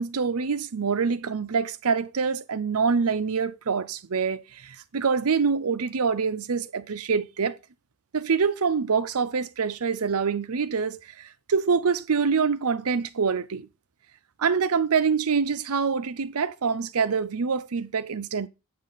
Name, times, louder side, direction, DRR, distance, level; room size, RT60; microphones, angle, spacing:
voice 1, 0.0-7.6 8.1-13.7 14.4-18.5, right 5 dB, 70° right, 0.6 m, -25 dB
8.6 x 7.5 x 4.0 m
head